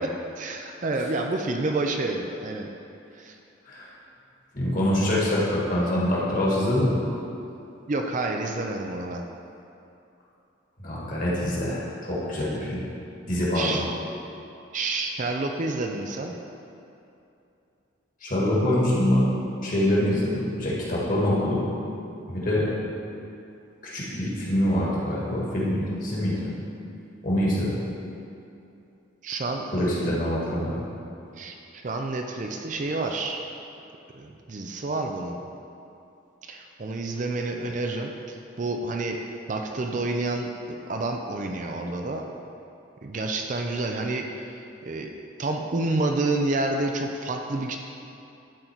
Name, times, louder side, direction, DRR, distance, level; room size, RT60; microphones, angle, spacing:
voice 1, 0.0-2.7 3.1-3.3 7.9-9.2 13.5-13.9 14.7-16.3 29.2-30.2 31.4-33.4 34.1-35.4 36.4-39.2 39.5-42.2 43.0-45.1 45.4-47.8, right 2 dB, 40° right, 3 dB, 0.4 m, -29 dB
voice 2, 4.5-7.0 10.8-12.8 13.3-13.8 18.2-19.3 19.6-20.3 20.6-21.6 22.3-22.7 23.8-26.4 27.2-27.7 29.7-30.8, left 1 dB, 40° left, -6 dB, 1.8 m, -24 dB
12.0 x 4.0 x 4.5 m, 2.7 s
head